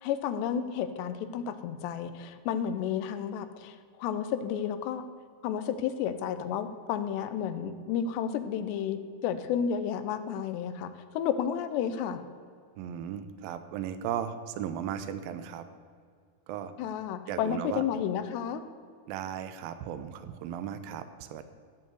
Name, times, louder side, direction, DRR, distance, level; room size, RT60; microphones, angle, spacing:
voice 1, 0.0-5.0 5.4-10.9 11.1-12.2 16.8-18.6, left 8 dB, 85° left, 10 dB, 2.9 m, -31 dB
voice 2, 12.8-15.6 16.5-16.7 17.3-17.8 19.1-21.5, right 9 dB, 85° right, 10 dB, 2.0 m, -36 dB
14.5 x 5.5 x 7.9 m, 2.2 s
omnidirectional pair, 4.9 m